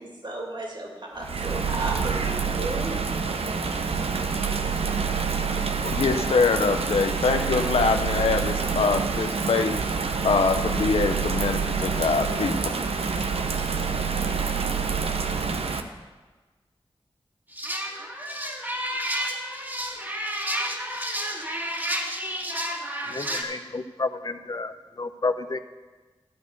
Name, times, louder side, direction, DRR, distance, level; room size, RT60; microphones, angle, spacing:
voice 1, 0.0-2.9, right 2 dB, 50° right, -1 dB, 2.5 m, -33 dB
Bird vocalization bird call bird song / Rain, 1.2-15.8, right 5 dB, 80° right, 0.7 m, -27 dB
voice 2, 5.8-9.7 10.2-12.7, left 4 dB, 80° left, 7 dB, 0.6 m, -24 dB
sound 1, 17.5-23.4, equal, 20° right, 1.8 m, -30 dB
voice 3, 23.1-25.6, left 3 dB, 45° left, 10 dB, 0.7 m, -30 dB
12.0 x 4.5 x 8.1 m, 1.3 s
cardioid pair, 45°, 10 cm